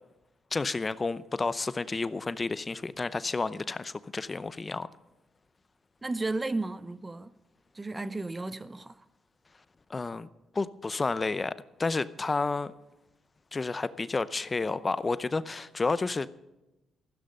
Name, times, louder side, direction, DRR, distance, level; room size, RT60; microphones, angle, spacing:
voice 1, 0.5-4.9 9.9-10.3 10.5-12.7 13.5-16.3, left 3 dB, 25° left, 0.6 m, -31 dB
voice 2, 6.0-7.3 7.7-9.0, right 2 dB, 20° right, 0.7 m, -33 dB
15.0 x 13.0 x 5.4 m
cardioid pair, 90°, 0 cm